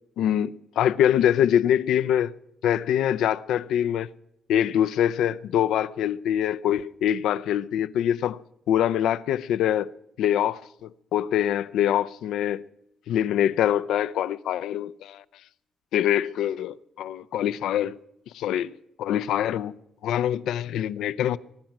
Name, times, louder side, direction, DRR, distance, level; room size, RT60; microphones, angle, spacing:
voice 1, 0.2-2.3 2.6-4.1 4.5-8.4 8.7-9.9 10.2-12.7 13.1-15.2 15.9-18.0 18.3-18.7 19.0-19.7 20.0-21.4, left 10 dB, 80° left, 0.5 m, -24 dB
23.5 x 10.5 x 6.0 m
cardioid pair, 90°, 0 cm